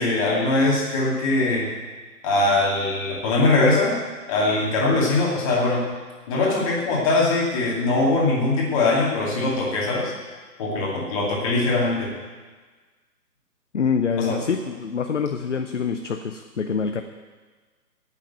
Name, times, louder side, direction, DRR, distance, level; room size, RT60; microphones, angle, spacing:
voice 1, 0.0-1.7 2.2-3.9 4.3-5.9 6.3-10.1 10.6-12.1 14.2-14.4, left 2 dB, 20° left, -4 dB, 2.4 m, -21 dB
voice 2, 13.7-17.0, left 6 dB, 50° left, 7 dB, 0.7 m, -25 dB
8.6 x 8.5 x 9.0 m, 1.4 s
figure-of-eight pair, 150°, 49 cm